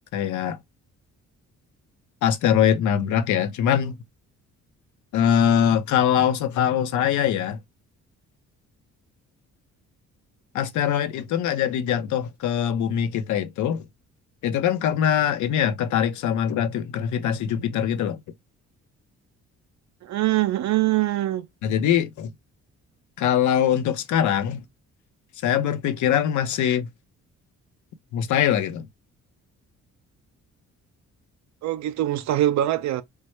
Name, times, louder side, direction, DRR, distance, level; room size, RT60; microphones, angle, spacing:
voice 1, 0.1-0.6 2.2-4.0 5.1-7.6 10.5-13.8 14.4-18.2 21.6-22.3 23.2-24.6 25.4-26.9 28.1-28.9, left 9 dB, 75° left, 0.6 m, -22 dB
voice 2, 20.0-21.5 31.6-33.0, right 14 dB, 65° right, 0.4 m, -23 dB
3.2 x 2.2 x 3.0 m
cardioid pair, 90°, 30 cm